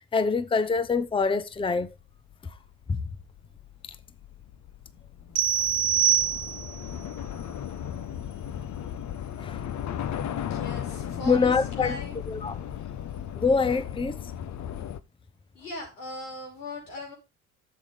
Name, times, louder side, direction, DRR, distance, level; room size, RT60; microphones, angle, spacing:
voice 1, 0.0-1.9 2.9-3.0 9.4-9.6 11.3-12.0 12.3-12.6 13.4-14.2, left 4 dB, 10° left, 0.8 m, -25 dB
Train / Subway metro underground, 2.0-15.0, left 9 dB, 40° left, 1.0 m, -36 dB
sound 1, 5.4-6.9, right 10 dB, 35° right, 1.3 m, -24 dB
voice 2, 10.2-11.5 11.8-12.2 15.5-17.1, left 2 dB, 85° left, 5.6 m, -39 dB
12.0 x 7.7 x 3.4 m
hypercardioid pair, 70°, 44 cm